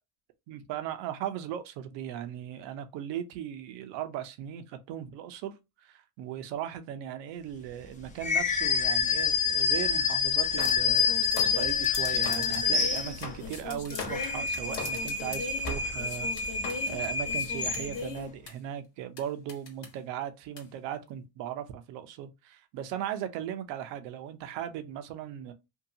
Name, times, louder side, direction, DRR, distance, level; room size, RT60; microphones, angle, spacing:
voice 1, 0.5-5.6 5.8-11.1 11.4-16.5 16.9-25.5, right 10 dB, 90° right, 0.6 m, -38 dB
sound 1, 8.2-13.5 13.9-18.2, left 6 dB, 20° left, 0.6 m, -28 dB
sound 2, 10.6-18.5 19.2-19.3 19.5-19.9 20.6-20.7, left 5 dB, 80° left, 1.2 m, -39 dB
2.7 x 2.3 x 2.6 m
cardioid pair, 90°, 42 cm